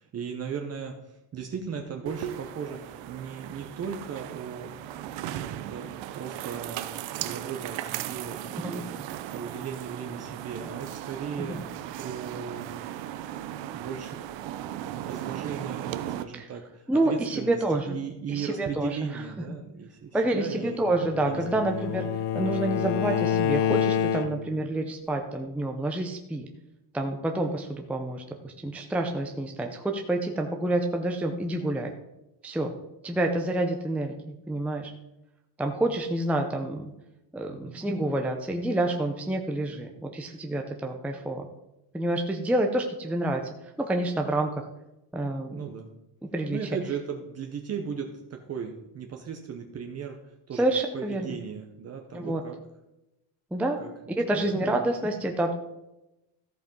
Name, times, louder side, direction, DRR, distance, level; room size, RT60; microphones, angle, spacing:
voice 1, 0.0-5.9 6.1-6.9 7.2-8.8 9.3-11.6 12.0-12.7 13.7-14.2 14.8-17.6 17.9-20.8 21.2-21.8 37.5-37.8 45.5-45.9 46.5-50.7 50.9-52.6 53.8-53.9 54.3-55.1, right 6 dB, 35° right, 4 dB, 0.8 m, -37 dB
sound 1, 2.1-16.2, right 12 dB, 80° right, 0.7 m, -37 dB
voice 2, 8.6-9.0 11.4-11.6 16.4-16.5 16.9-18.0 18.3-19.2 20.1-26.5 26.9-31.9 32.4-32.7 33.0-34.9 35.6-36.9 37.3-41.5 41.9-43.4 43.8-44.7 45.1-45.6 46.3-46.6 50.5-51.3 52.1-52.4 53.5-53.8 54.2-55.6, right 1 dB, 5° right, 3 dB, 0.6 m, -28 dB
Bowed string instrument, 20.7-24.6, left 9 dB, 70° left, 0.9 m, -28 dB
14.0 x 5.3 x 5.3 m, 0.92 s
cardioid pair, 165°, 44 cm